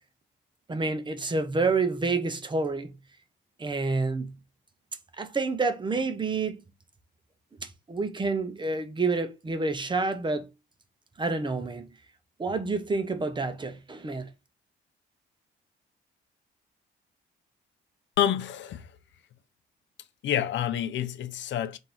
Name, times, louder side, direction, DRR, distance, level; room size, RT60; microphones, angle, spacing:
voice 1, 0.7-3.0 3.6-4.4 5.2-6.6 7.6-10.5 11.2-11.9 12.4-14.3, right 3 dB, 25° right, 0.7 m, -28 dB
voice 2, 18.2-18.9 20.2-21.8, left 10 dB, 70° left, 0.5 m, -28 dB
3.7 x 2.6 x 4.4 m
cardioid pair, 90°, 20 cm